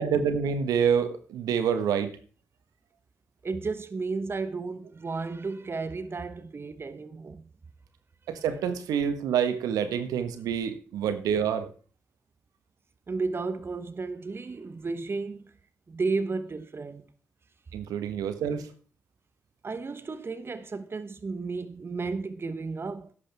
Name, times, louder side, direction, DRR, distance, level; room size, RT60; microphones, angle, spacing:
voice 1, 0.0-2.2 8.3-11.7 17.7-18.7, right 7 dB, 75° right, 1.4 m, -27 dB
voice 2, 3.4-7.4 10.2-10.3 13.1-15.5 15.9-17.1 19.6-23.1, right 4 dB, 40° right, 1.1 m, -33 dB
13.5 x 11.0 x 3.5 m
hypercardioid pair, 40°, 6 cm